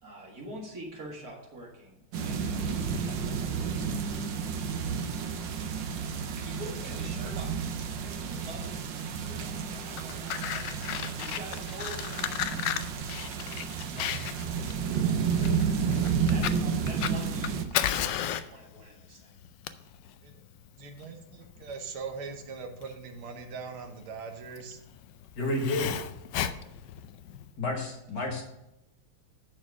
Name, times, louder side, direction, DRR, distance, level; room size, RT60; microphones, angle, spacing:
voice 1, 0.0-4.8 6.4-7.6 8.0-12.8 13.5-15.5 16.1-19.4 19.8-19.9 21.5-21.7 28.1-28.4, right 1 dB, 45° right, -1 dB, 2.3 m, -46 dB
sound 1, 2.1-17.7, right 6 dB, 70° right, 1.4 m, -31 dB
voice 2, 6.8-7.3 10.2-10.3 20.2-20.3 20.8-24.8 26.4-26.7, right 5 dB, 85° right, 5 dB, 1.9 m, -41 dB
Fire, 9.8-27.5, left 11 dB, 75° left, 1.0 m, -35 dB
voice 3, 25.4-25.9 27.6-28.4, left 2 dB, 55° left, 0 dB, 2.1 m, -30 dB
10.5 x 4.5 x 6.1 m, 0.89 s
omnidirectional pair, 2.3 m